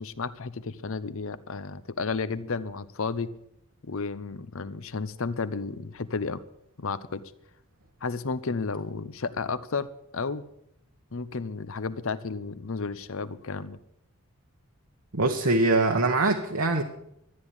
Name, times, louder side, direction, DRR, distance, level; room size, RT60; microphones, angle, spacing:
voice 1, 0.0-3.3 3.9-6.4 6.8-7.2 8.0-10.4 11.1-13.8, left 4 dB, 65° left, 15 dB, 0.8 m, -32 dB
voice 2, 15.1-16.8, right 2 dB, 70° right, 3 dB, 1.2 m, -23 dB
13.0 x 9.8 x 8.6 m, 0.78 s
head